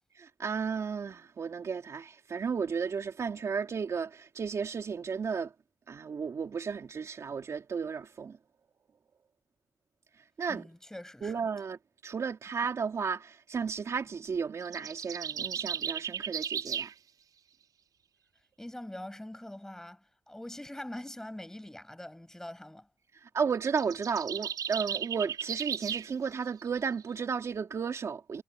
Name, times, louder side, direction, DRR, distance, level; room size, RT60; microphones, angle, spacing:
voice 1, 0.2-5.5 5.9-8.4 10.4-10.6 11.2-11.8 12.0-16.9 23.2-28.4, right 6 dB, 45° right, 3.4 m, -33 dB
voice 2, 10.5-11.5 18.6-22.9, left 1 dB, 5° left, 7.6 m, -43 dB
sound 1, 14.6-16.9 23.5-26.1, right 8 dB, 65° right, 7.4 m, -35 dB
cardioid pair, 125°, 7 cm